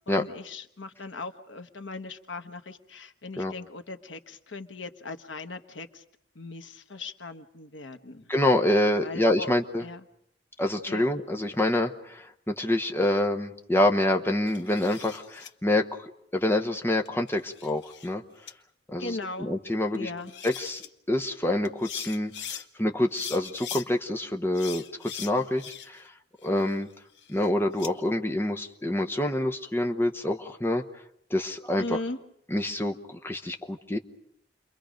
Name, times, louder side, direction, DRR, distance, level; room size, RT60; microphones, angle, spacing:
voice 1, 0.1-6.0 6.3-8.3 9.0-9.5 9.8-10.0 10.9-11.1 19.0-19.5 19.9-20.3 31.8-32.2, left 3 dB, 90° left, 8 dB, 1.2 m, -38 dB
voice 2, 8.3-9.8 10.6-18.2 18.9-20.1 20.4-26.1 26.4-26.9 27.3-30.8 31.3-32.0 32.5-34.0, left 1 dB, 10° left, 3 dB, 1.0 m, -27 dB
sound 1, 14.5-15.5 17.1-18.1 18.5-18.6 19.9-20.0 20.3-20.9 21.6-22.6 23.1-23.9 24.5-26.1 26.4-27.9, left 8 dB, 70° left, 1.0 m, -41 dB
29.5 x 23.5 x 5.2 m, 0.75 s
head